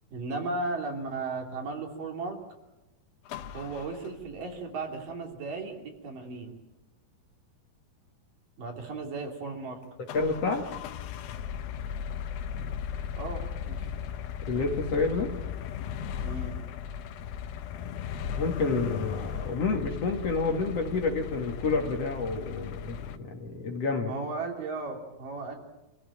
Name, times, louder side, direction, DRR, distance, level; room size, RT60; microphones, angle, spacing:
voice 1, 0.1-2.4 3.5-6.6 8.6-9.8 13.2-13.9 16.2-16.6 24.1-25.6, right 3 dB, 65° right, 1 dB, 4.8 m, -35 dB
sound 1, 3.3-4.6 10.1-23.2, left 8 dB, 80° left, 2.8 m, -37 dB
voice 2, 10.1-10.7 14.4-15.3 17.9-18.0 18.3-24.1, left 4 dB, 50° left, 3 dB, 2.7 m, -29 dB
26.5 x 16.5 x 8.7 m, 1.0 s
omnidirectional pair, 4.2 m